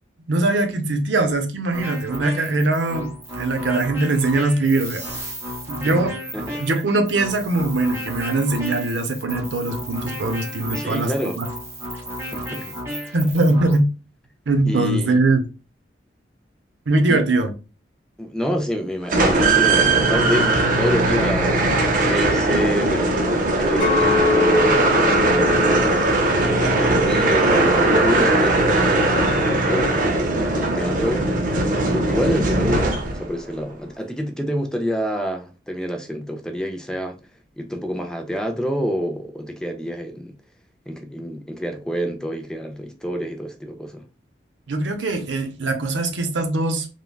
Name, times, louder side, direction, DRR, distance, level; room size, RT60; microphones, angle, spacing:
voice 1, 0.2-3.1 3.4-5.0 5.7-6.1 6.6-11.5 13.1-13.9 14.5-15.4 16.9-17.5 44.7-46.9, right 2 dB, 90° right, 0.6 m, -21 dB
sound 1, 1.7-13.8, equal, 15° right, 0.7 m, -33 dB
voice 2, 6.3-6.6 10.8-11.4 12.3-12.7 13.0-13.1 14.7-15.2 17.1-17.2 18.2-21.6 22.0-25.7 26.5-31.3 31.8-37.1 37.6-40.3 40.9-44.0, equal, 5° left, 0.3 m, -27 dB
sound 2, 19.1-33.4, right 2 dB, 50° right, 0.6 m, -19 dB
Chink clink, 23.8-28.1 28.6-29.0, left 5 dB, 45° left, 1.1 m, -25 dB
3.4 x 2.2 x 2.2 m
head